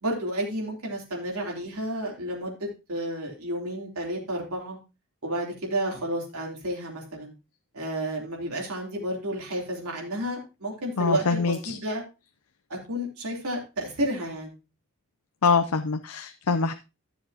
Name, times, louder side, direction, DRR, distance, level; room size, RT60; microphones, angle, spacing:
voice 1, 0.0-4.8 5.2-7.3 7.7-12.0 12.7-14.5, right 1 dB, 80° right, -2 dB, 3.3 m, -31 dB
voice 2, 11.0-11.8 15.4-16.7, left 4 dB, 85° left, 10 dB, 0.6 m, -24 dB
14.5 x 7.2 x 2.9 m, 0.28 s
head